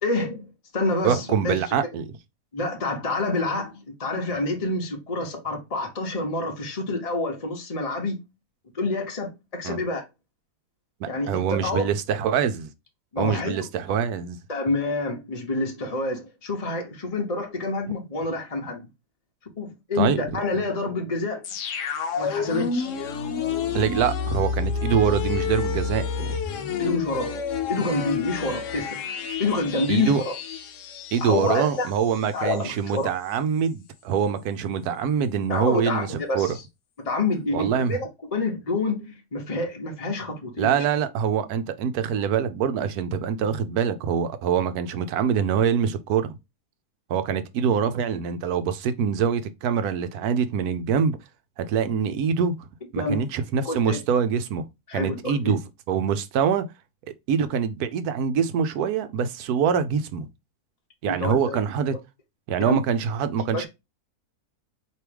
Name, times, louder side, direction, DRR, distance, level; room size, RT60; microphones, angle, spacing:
voice 1, 0.0-0.5 0.7-1.7 2.5-8.2 8.7-10.0 11.0-11.9 13.1-13.6 14.5-18.9 19.6-21.4 22.1-22.9 26.8-27.3 27.7-29.0 29.4-30.3 31.2-31.9 32.3-33.1 35.5-36.6 37.0-40.8 53.0-53.2 53.6-54.0 54.9-55.6 61.1-61.6 62.6-62.8 63.5-63.7, left 2 dB, 30° left, 0.8 m, -27 dB
voice 2, 1.0-2.1 9.6-9.8 11.0-12.7 13.2-14.4 20.0-20.2 23.7-26.4 29.9-30.2 31.1-36.1 36.3-36.5 37.5-38.0 40.6-46.4 47.1-51.2 51.6-52.7 52.9-54.6 54.9-55.6 55.9-56.7 57.3-60.3 61.0-61.9 62.5-63.7, right 7 dB, 75° right, 1.1 m, -24 dB
sound 1, 21.4-32.3 32.6-32.7, left 6 dB, 65° left, 0.9 m, -29 dB
4.6 x 3.0 x 3.3 m
omnidirectional pair, 1.7 m